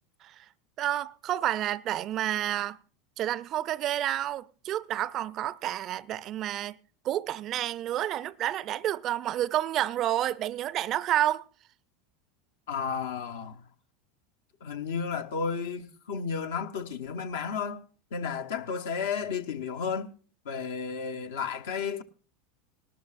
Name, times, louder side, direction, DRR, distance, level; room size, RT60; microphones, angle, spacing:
voice 1, 0.8-2.8 3.2-6.8 7.0-11.5, right 12 dB, 45° right, 0.4 m, -29 dB
voice 2, 12.7-13.6 14.6-17.8 18.1-20.1 20.4-22.0, left 6 dB, 70° left, 1.0 m, -32 dB
19.5 x 12.5 x 2.5 m
figure-of-eight pair, 80°, 0 cm